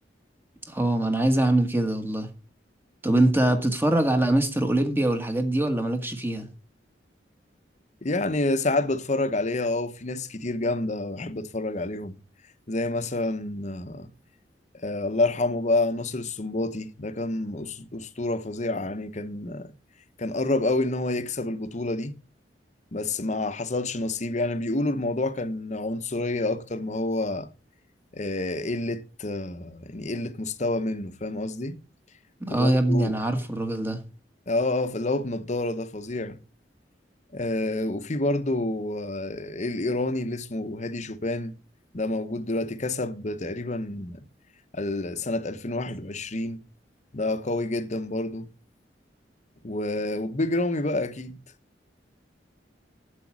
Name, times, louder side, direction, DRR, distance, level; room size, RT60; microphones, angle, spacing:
voice 1, 0.7-2.3 3.0-6.5 32.4-34.0, right 1 dB, 10° right, 1.6 m, -23 dB
voice 2, 8.0-12.2 12.7-14.1 14.8-19.7 20.2-22.2 22.9-27.5 28.1-31.8 32.5-33.2 34.5-36.4 37.3-41.5 41.9-44.2 44.7-46.6 47.1-48.5 49.6-51.4, left 2 dB, 40° left, 1.0 m, -28 dB
8.2 x 8.1 x 6.2 m
head